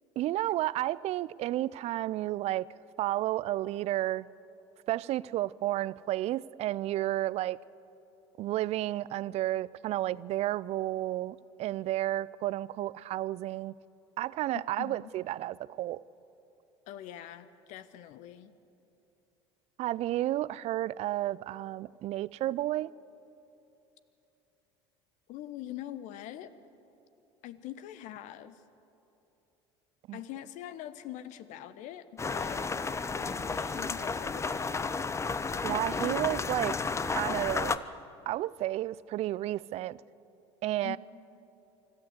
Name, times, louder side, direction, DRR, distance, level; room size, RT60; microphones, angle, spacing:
voice 1, 0.2-2.7 3.0-4.3 4.9-7.6 8.4-13.7 14.2-16.0 19.8-22.9 30.1-30.2 35.6-36.8 37.0-37.8 38.3-40.0 40.6-41.0, right 15 dB, 45° right, 0.5 m, -32 dB
voice 2, 14.5-15.1 16.9-18.5 25.3-26.5 27.4-28.6 30.1-34.9 40.8-41.0, left 12 dB, 55° left, 1.0 m, -43 dB
sound 1, 32.2-37.8, left 4 dB, 20° left, 0.8 m, -32 dB
25.0 x 13.5 x 8.1 m
hypercardioid pair, 70°, 15 cm